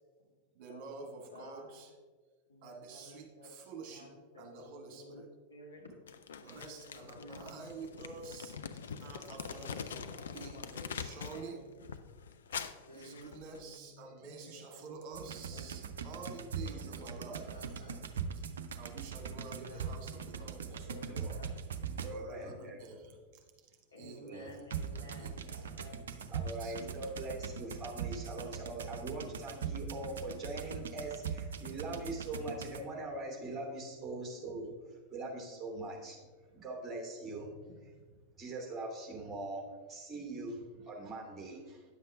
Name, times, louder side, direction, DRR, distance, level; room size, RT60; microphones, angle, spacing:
voice 1, 0.5-1.9 2.6-4.1 4.4-5.2 6.4-11.7 12.9-17.9 18.4-18.5 18.8-20.9 22.0-23.1 23.6-24.6 24.9-25.6 26.3-27.0, right 4 dB, 45° right, 3 dB, 1.7 m, -49 dB
voice 2, 1.3-1.8 2.5-5.9 6.5-7.7 9.7-10.7 11.1-11.7 12.9-15.0 15.4-15.7 16.6-18.1 19.0-19.2 19.5-21.6 22.5-22.8 23.0-23.2 23.9-26.0, left 1 dB, 80° left, -3 dB, 2.2 m, -54 dB
Crumpling crinkling, 6.1-11.5 11.8-13.8, left 7 dB, 65° left, 0.5 m, -44 dB
sound 1, 15.1-22.4 24.7-32.8, right 6 dB, 65° right, 0.6 m, -41 dB
voice 3, 21.1-21.5 22.0-22.8 24.2-24.5 26.0-26.1 26.3-36.2 36.5-37.9 38.3-41.9, right 2 dB, 15° right, -1 dB, 2.7 m, -42 dB
9.9 x 7.4 x 3.6 m, 1.4 s
figure-of-eight pair, 90°, 0 cm